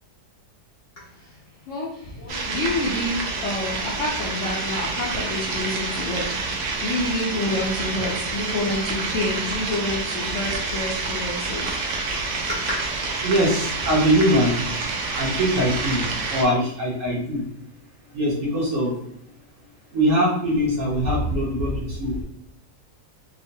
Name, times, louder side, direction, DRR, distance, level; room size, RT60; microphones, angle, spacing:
voice 1, 1.7-11.8 12.1-12.6, left 2 dB, 70° left, -5 dB, 0.7 m, -28 dB
sound 1, 2.3-16.4, right 3 dB, 80° right, 0.6 m, -28 dB
voice 2, 13.2-14.6 15.1-17.5 18.1-18.9 19.9-22.2, equal, 60° right, -4 dB, 0.9 m, -22 dB
3.0 x 2.1 x 2.6 m, 0.75 s
omnidirectional pair, 1.8 m